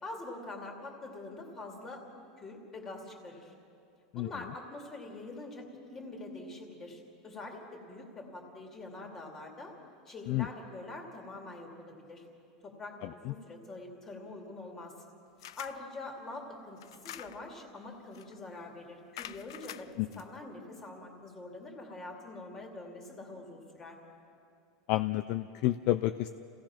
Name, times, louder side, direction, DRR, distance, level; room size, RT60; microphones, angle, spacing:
voice 1, 0.0-2.0 2.4-3.5 4.2-9.7 10.1-12.3 12.6-14.9 15.6-24.0, left 2 dB, 15° left, 1 dB, 2.5 m, -45 dB
voice 2, 13.0-13.3 20.0-20.1 24.9-26.3, left 16 dB, 40° left, 11 dB, 0.4 m, -30 dB
sound 1, 15.4-15.8 16.8-17.6 18.1-18.4 19.2-20.2, left 12 dB, 90° left, 0.6 m, -46 dB
29.5 x 17.0 x 5.9 m, 2.6 s
supercardioid pair, 175°, 2 cm